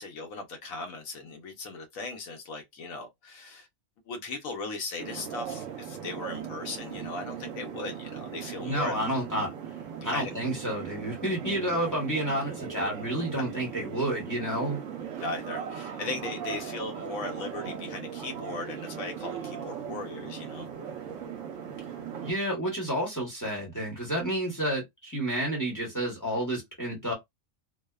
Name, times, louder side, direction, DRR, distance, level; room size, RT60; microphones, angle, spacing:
voice 1, 0.0-3.7 4.1-8.9 10.0-10.3 15.2-20.7, left 3 dB, 75° left, 1.1 m, -38 dB
sound 1, 5.0-22.3, right 8 dB, 70° right, 0.9 m, -38 dB
voice 2, 8.6-9.5 10.0-14.8 22.2-27.1, right 1 dB, 15° left, 0.9 m, -30 dB
2.7 x 2.1 x 2.2 m
omnidirectional pair, 1.4 m